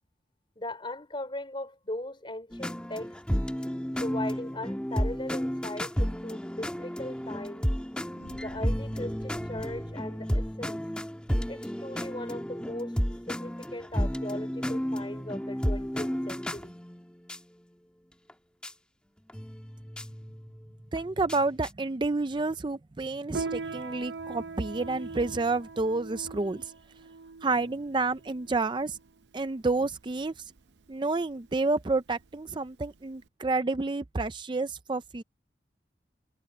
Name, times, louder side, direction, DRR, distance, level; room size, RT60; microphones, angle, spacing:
voice 1, 0.6-3.2 4.0-7.7 8.4-10.8 11.5-13.0 13.3-16.8, left 1 dB, 30° left, 3.7 m, -39 dB
sound 1, 2.5-17.4 18.3-18.4 18.6-18.7 19.3-21.7, equal, 5° left, 1.4 m, -32 dB
sound 2, 8.1-10.3, equal, 85° left, 5.4 m, -48 dB
voice 2, 20.9-26.7 27.4-29.0 29.3-30.4 30.9-35.2, right 3 dB, 25° right, 0.5 m, -29 dB
Piano, 23.3-33.3, right 4 dB, 80° right, 0.7 m, -41 dB
head